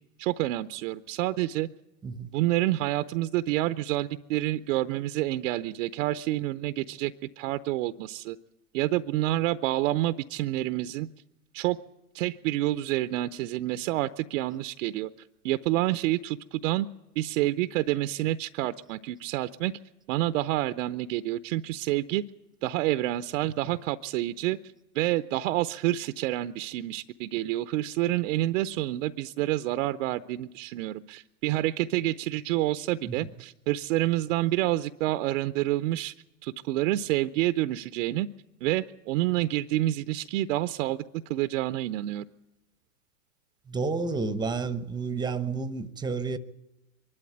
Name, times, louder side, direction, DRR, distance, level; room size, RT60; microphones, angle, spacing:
voice 1, 0.2-1.7 2.3-8.4 8.7-11.1 11.5-11.8 12.1-15.1 15.4-16.9 17.2-19.7 20.1-22.2 22.6-24.6 24.9-36.1 36.4-38.3 38.6-41.0 41.3-42.2, right 15 dB, 55° right, 0.7 m, -28 dB
voice 2, 43.7-46.4, right 4 dB, 10° right, 0.9 m, -30 dB
23.5 x 12.0 x 9.2 m
hypercardioid pair, 115°, 46 cm